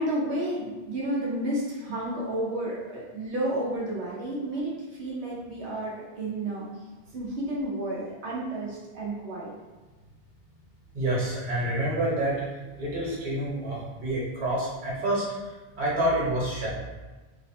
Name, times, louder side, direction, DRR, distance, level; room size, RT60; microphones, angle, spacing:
voice 1, 0.0-6.7 7.1-9.5, right 1 dB, 85° right, -5 dB, 1.0 m, -31 dB
voice 2, 10.9-12.4 12.8-15.2 15.8-16.7, right 1 dB, 50° right, -6 dB, 1.3 m, -27 dB
3.2 x 2.1 x 4.2 m, 1.3 s
omnidirectional pair, 1.1 m